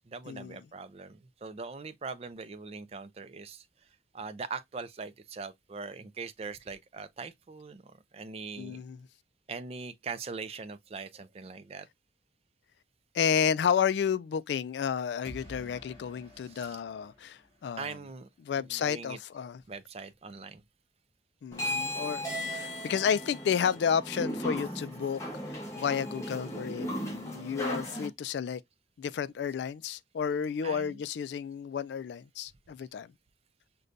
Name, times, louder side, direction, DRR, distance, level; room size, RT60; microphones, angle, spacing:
voice 1, 0.1-3.7 4.1-8.8 9.5-11.9 16.4-16.8 17.8-18.3 18.6-19.2 19.7-20.6 22.5-22.6 24.7-24.9 30.6-31.0, right 4 dB, 35° right, 0.4 m, -42 dB
voice 2, 8.6-9.0 13.1-17.9 18.4-19.6 21.4-22.2 22.5-25.2 25.5-28.6 29.0-33.1, left 7 dB, 70° left, 0.3 m, -31 dB
sound 1, 15.2-18.1, equal, 30° left, 2.4 m, -51 dB
sound 2, 21.5-28.1, equal, 15° left, 1.0 m, -36 dB
6.5 x 2.2 x 2.5 m
head